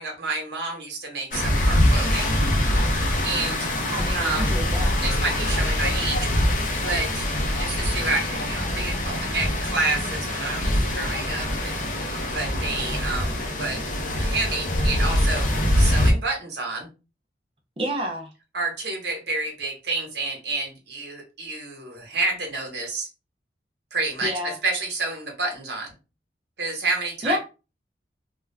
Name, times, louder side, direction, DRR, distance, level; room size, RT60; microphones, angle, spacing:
voice 1, 0.0-2.4 3.2-3.7 4.1-4.5 5.0-6.3 6.8-7.2 7.6-13.8 14.1-15.5 15.7-16.9 18.5-23.1 23.9-25.9 26.6-27.4, right 3 dB, 70° right, 1.0 m, -29 dB
sound 1, 1.3-16.1, left 1 dB, 45° left, 0.5 m, -24 dB
voice 2, 3.9-4.9 17.8-18.3 24.2-24.6 27.2-27.4, equal, 30° right, 0.5 m, -28 dB
2.3 x 2.2 x 3.2 m
head